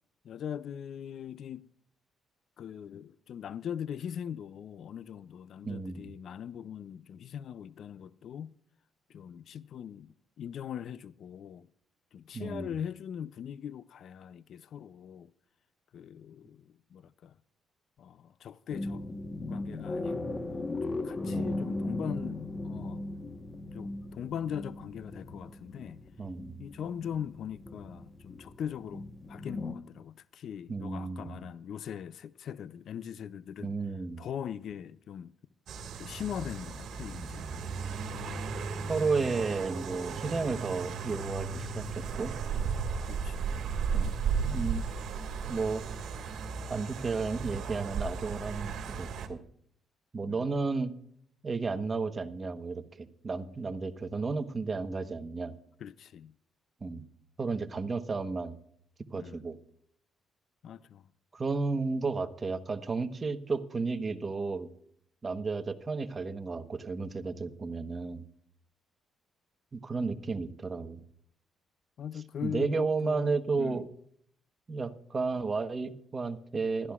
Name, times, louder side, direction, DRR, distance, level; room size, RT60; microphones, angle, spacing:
voice 1, 0.2-1.7 2.6-8.5 9.1-11.7 12.1-15.3 15.9-17.3 18.0-19.0 19.5-23.0 23.7-26.0 26.6-33.7 34.2-35.3 36.0-37.7 43.1-43.6 50.2-50.5 55.8-56.3 59.1-59.4 60.6-61.1 72.0-73.9, left 8 dB, 65° left, 0.4 m, -41 dB
voice 2, 5.6-6.1 12.3-12.7 21.3-21.9 26.2-26.6 30.7-31.4 33.6-34.2 38.9-42.3 43.9-44.1 44.4-44.9 45.5-45.8 46.7-49.4 50.1-50.9 51.4-55.6 56.8-57.0 57.4-58.6 59.1-59.6 61.3-64.7 65.2-68.2 69.7-71.0 72.4-73.8 74.7-76.9, right 4 dB, 35° right, 1.1 m, -33 dB
sound 1, 18.7-29.7, left 2 dB, 30° left, 1.2 m, -37 dB
sound 2, 35.7-49.3, right 5 dB, 70° right, 1.8 m, -35 dB
20.0 x 13.0 x 2.4 m
cardioid pair, 90°, 0 cm